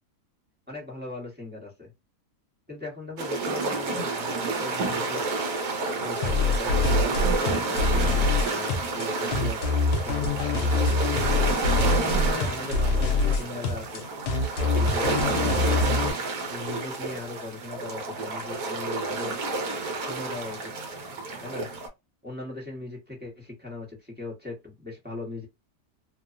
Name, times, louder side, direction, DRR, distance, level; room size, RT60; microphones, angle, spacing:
voice 1, 0.7-1.9 2.7-5.5 6.0-9.6 10.0-11.5 11.8-14.0 14.6-15.9 16.5-19.4 20.0-20.9 21.4-21.7 22.2-25.5, left 3 dB, 10° right, 0.7 m, -39 dB
sound 1, 3.2-21.9, right 3 dB, 70° right, 1.2 m, -30 dB
sound 2, 6.2-16.1, left 3 dB, 75° left, 1.1 m, -25 dB
2.9 x 2.0 x 2.4 m
omnidirectional pair, 1.8 m